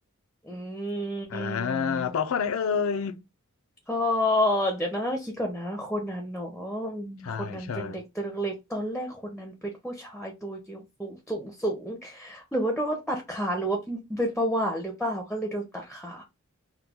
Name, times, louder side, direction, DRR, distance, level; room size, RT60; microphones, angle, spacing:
voice 1, 0.5-2.1 3.9-16.2, equal, 5° left, 0.5 m, -30 dB
voice 2, 1.3-3.2 7.2-8.0, left 6 dB, 80° left, 0.4 m, -28 dB
3.0 x 2.2 x 3.5 m
head